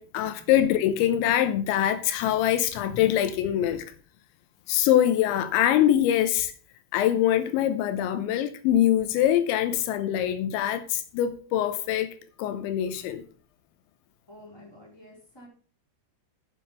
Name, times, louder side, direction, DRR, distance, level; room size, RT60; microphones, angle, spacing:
voice 1, 0.0-3.9 4.7-6.5 6.9-12.1 12.4-13.2, left 11 dB, 80° left, 2.9 m, -24 dB
voice 2, 14.3-15.5, left 1 dB, 5° left, 3.7 m, -49 dB
8.0 x 7.4 x 5.6 m
omnidirectional pair, 5.6 m